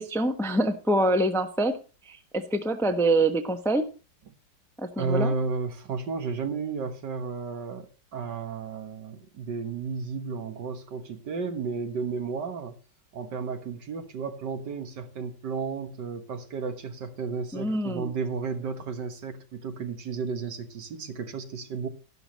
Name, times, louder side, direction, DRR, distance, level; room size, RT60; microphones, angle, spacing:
voice 1, 0.0-1.8 2.1-3.9 4.8-5.3 17.5-18.1, right 1 dB, ahead, 0.7 m, -25 dB
voice 2, 5.0-12.8 13.1-21.9, right 5 dB, 75° right, 2.0 m, -33 dB
12.0 x 11.5 x 3.0 m
omnidirectional pair, 1.9 m